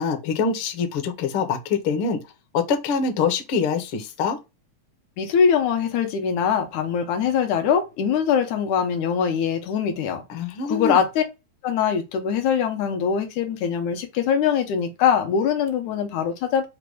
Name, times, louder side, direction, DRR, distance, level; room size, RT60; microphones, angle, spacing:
voice 1, 0.0-2.2 2.5-4.4 10.3-11.0, left 5 dB, 70° left, 1.3 m, -24 dB
voice 2, 5.2-10.2 10.6-11.2 11.6-16.7, left 7 dB, 85° left, 2.1 m, -22 dB
5.0 x 2.3 x 4.6 m
omnidirectional pair, 3.4 m